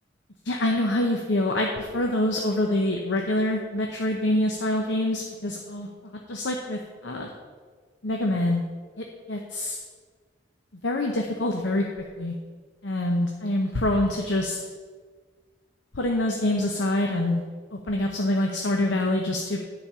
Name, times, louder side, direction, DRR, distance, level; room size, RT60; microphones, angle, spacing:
voice 1, 0.4-7.3 8.0-8.6 9.0-9.8 10.8-11.8 12.2-12.3 12.8-14.6 15.9-17.4 17.7-19.6, left 1 dB, 70° left, 1 dB, 0.9 m, -25 dB
10.0 x 5.2 x 7.1 m, 1.5 s
head